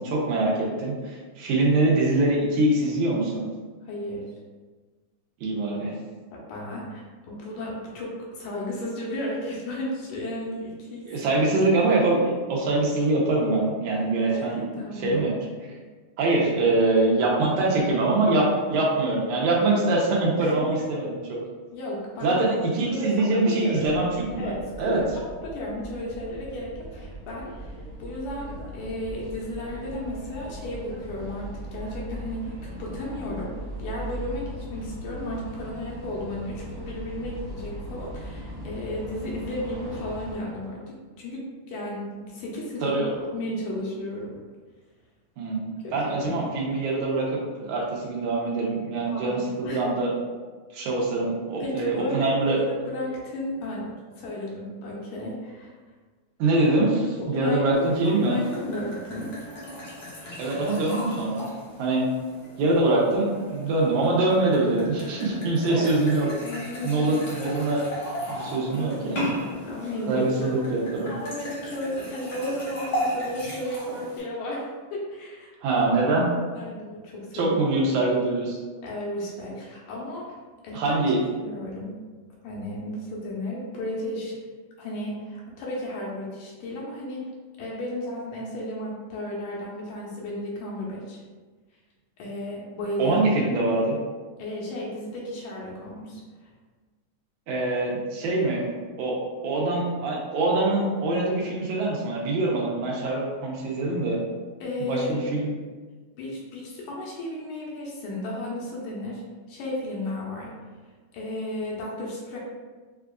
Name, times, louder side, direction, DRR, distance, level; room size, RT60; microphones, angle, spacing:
voice 1, 0.0-3.5 5.4-5.9 11.1-14.6 15.0-15.3 16.2-21.4 22.2-25.0 42.8-43.1 45.4-50.1 50.7-52.6 56.4-58.4 60.4-61.5 61.8-62.1 62.6-66.3 66.8-67.8 68.3-69.4 70.1-71.1 75.6-76.3 77.3-78.6 80.7-81.2 93.0-94.0 97.5-98.7 99.0-99.2 99.4-104.2 104.8-105.5, right 2 dB, 80° right, -3 dB, 2.2 m, -24 dB
voice 2, 3.8-4.3 6.3-11.1 14.3-15.3 20.4-20.5 21.7-22.5 22.9-23.8 24.4-43.0 43.3-44.4 45.8-46.4 49.1-49.8 51.6-55.7 57.2-59.3 65.3-65.4 65.7-65.9 66.4-67.1 69.4-70.3 70.5-70.7 71.0-74.6 74.9-75.8 76.5-77.6 78.8-80.4 80.6-81.0 81.4-81.9 82.4-84.3 84.8-87.3 87.6-91.2 92.2-93.2 94.4-96.5 104.6-105.3 106.2-109.2 109.5-110.5 111.1-112.4, left 1 dB, 80° left, -4 dB, 2.2 m, -34 dB
sound 1, 23.8-40.4, equal, 50° right, 1.5 m, -39 dB
sound 2, 57.7-74.2, equal, 50° left, 1.2 m, -36 dB
6.6 x 2.4 x 2.3 m, 1.4 s
omnidirectional pair, 3.5 m